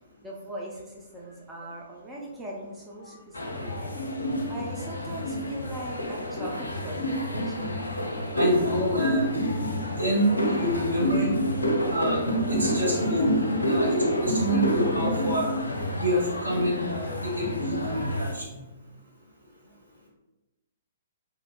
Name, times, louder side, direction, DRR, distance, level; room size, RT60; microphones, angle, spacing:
voice 1, 0.2-3.9 4.5-7.9 13.7-14.6, right 1 dB, 10° right, -4 dB, 0.4 m, -40 dB
sound 1, 3.3-18.3, equal, 75° left, 0.4 m, -28 dB
voice 2, 8.3-9.6 10.0-11.3 11.9-13.3 13.6-15.5 15.9-18.6, equal, 75° right, -5 dB, 1.5 m, -27 dB
3.4 x 2.9 x 2.3 m, 1.0 s
figure-of-eight pair, 115°, 0 cm